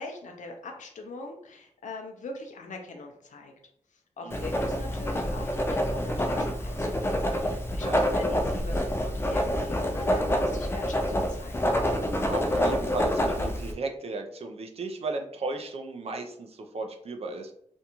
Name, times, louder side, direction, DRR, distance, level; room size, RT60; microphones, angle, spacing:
voice 1, 0.0-3.5 3.9-11.8, left 2 dB, 80° left, 3 dB, 0.5 m, -42 dB
voice 2, 4.2-4.7 7.8-8.1 12.3-17.5, right 3 dB, 55° right, 4 dB, 0.4 m, -35 dB
Writing, 4.3-13.7, equal, 20° left, 0.4 m, -27 dB
2.6 x 2.3 x 2.9 m, 0.67 s
wide cardioid pair, 115°, 13 cm